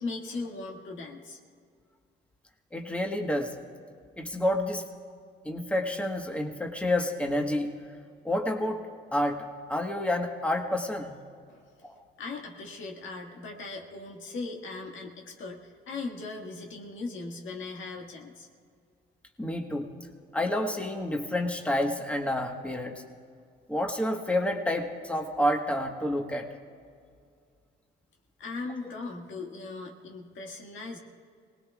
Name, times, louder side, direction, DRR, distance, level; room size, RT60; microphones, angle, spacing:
voice 1, 0.0-1.4 11.5-11.9 12.2-18.5 28.4-31.0, left 3 dB, 75° left, 1 dB, 1.9 m, -39 dB
voice 2, 2.7-3.5 4.2-4.8 5.4-7.7 8.2-8.8 9.1-9.4 9.7-11.1 11.8-12.0 19.4-19.9 20.3-22.9 23.7-26.5, left 1 dB, 5° left, 2 dB, 1.3 m, -29 dB
25.5 x 19.0 x 2.4 m, 2.2 s
cardioid pair, 90°, 20 cm